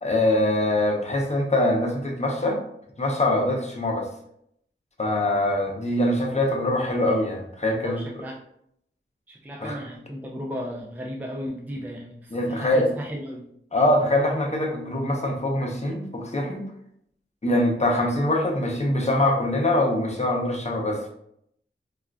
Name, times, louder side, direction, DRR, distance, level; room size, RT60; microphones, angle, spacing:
voice 1, 0.0-2.6 3.0-4.1 5.0-8.0 9.6-9.8 12.3-12.9 13.7-16.7 17.4-21.1, left 1 dB, 30° left, 0 dB, 0.6 m, -23 dB
voice 2, 7.7-8.4 9.3-13.5, equal, 10° right, -2 dB, 0.4 m, -35 dB
3.6 x 2.4 x 2.2 m, 0.74 s
wide cardioid pair, 65°, 21 cm